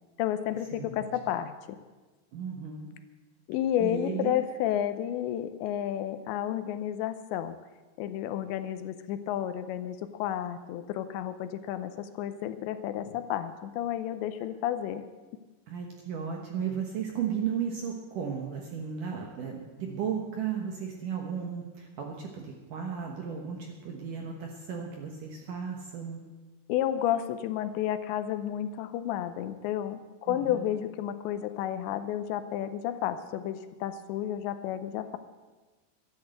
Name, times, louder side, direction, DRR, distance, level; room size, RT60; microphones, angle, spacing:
voice 1, 0.2-1.8 3.5-7.6 8.0-15.0 26.7-35.2, left 11 dB, 80° left, 10 dB, 2.9 m, -31 dB
voice 2, 0.7-1.0 2.3-2.9 3.8-4.3 15.7-26.2 30.3-30.7, right 7 dB, 65° right, 1 dB, 2.2 m, -35 dB
13.0 x 10.5 x 7.9 m, 1.2 s
omnidirectional pair, 5.3 m